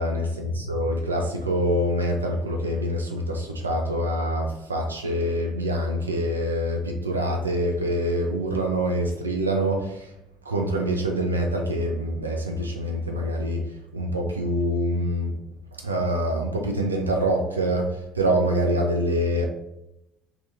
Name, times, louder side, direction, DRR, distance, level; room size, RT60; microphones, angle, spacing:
voice 1, 0.0-10.1 10.5-15.4 15.8-19.5, equal, 85° right, 3 dB, 0.3 m, -25 dB
3.3 x 2.8 x 2.5 m, 0.88 s
figure-of-eight pair, 55°, 0 cm